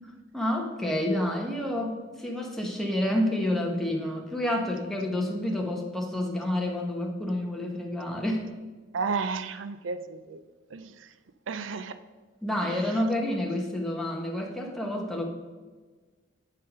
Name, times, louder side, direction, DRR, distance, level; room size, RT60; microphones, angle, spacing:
voice 1, 0.3-8.4 12.4-15.2, left 1 dB, ahead, 1.2 m, -29 dB
voice 2, 8.9-10.4 10.7-10.8 11.5-11.9 12.6-12.7, right 4 dB, 70° right, 0.5 m, -32 dB
8.4 x 5.6 x 5.3 m
head